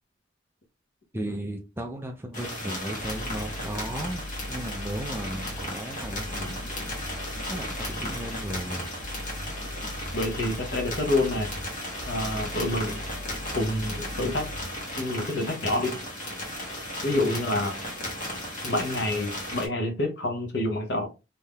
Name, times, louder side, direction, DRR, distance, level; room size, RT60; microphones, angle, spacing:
voice 1, 1.1-7.1 7.5-8.9, right 1 dB, 10° right, 0.4 m, -36 dB
sound 1, 2.3-19.7, left 1 dB, 40° left, 1.1 m, -35 dB
sound 2, 3.0-15.3, left 1 dB, 40° right, 1.2 m, -39 dB
voice 2, 10.1-11.5 12.1-13.0 13.5-14.5 14.9-15.9 17.0-17.8 18.6-21.1, left 1 dB, 55° left, 0.8 m, -27 dB
3.4 x 2.7 x 2.3 m
head